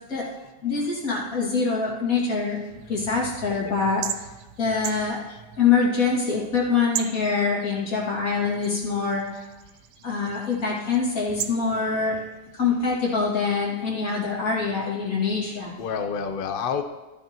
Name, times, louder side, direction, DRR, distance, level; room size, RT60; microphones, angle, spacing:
voice 1, 0.6-2.6 2.9-4.2 4.6-5.2 5.6-9.4 10.0-12.2 12.5-15.7, left 5 dB, 50° left, -3 dB, 2.6 m, -24 dB
sound 1, 2.7-13.5, right 10 dB, 75° right, 1.1 m, -39 dB
voice 2, 15.8-16.8, left 6 dB, 65° left, 8 dB, 0.5 m, -29 dB
13.5 x 12.0 x 2.9 m, 1.1 s
omnidirectional pair, 1.9 m